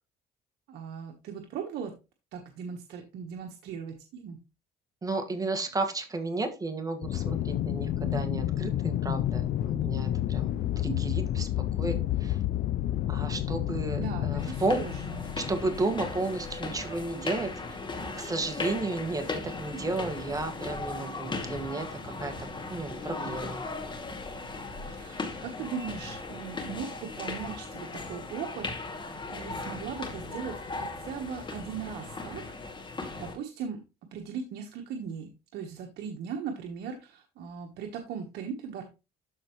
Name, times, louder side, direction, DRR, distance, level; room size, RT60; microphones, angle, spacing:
voice 1, 0.7-1.9 2.3-4.4 13.9-15.3 24.9-28.7 29.3-32.6 33.2-33.8 34.1-38.8, right 6 dB, 75° right, 3 dB, 1.2 m, -38 dB
voice 2, 5.0-12.4 13.1-14.8 15.4-17.5 18.2-23.6, right 3 dB, 20° right, 6 dB, 1.7 m, -33 dB
Aircraft, 7.0-16.5, left 12 dB, 60° left, 0.5 m, -30 dB
sound 1, 14.4-33.3, left 3 dB, 30° left, 2.3 m, -37 dB
12.5 x 4.3 x 3.1 m, 0.28 s
cardioid pair, 110°, 17 cm